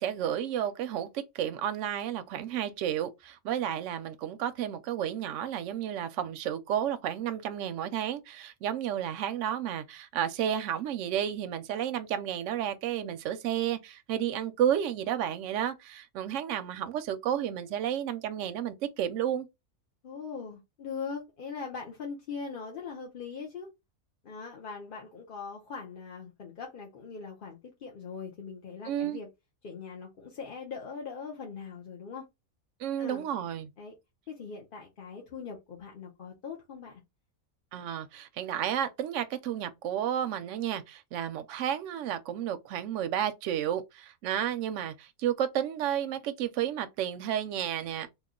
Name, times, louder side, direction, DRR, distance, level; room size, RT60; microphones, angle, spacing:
voice 1, 0.0-19.5 28.9-29.2 32.8-33.7 37.7-48.1, right 10 dB, 70° right, 0.8 m, -32 dB
voice 2, 20.0-23.7 24.2-29.3 29.6-32.2 33.0-33.3 33.8-33.9 34.3-37.0, left 5 dB, 45° left, 0.8 m, -41 dB
3.0 x 2.3 x 3.6 m
omnidirectional pair, 1.4 m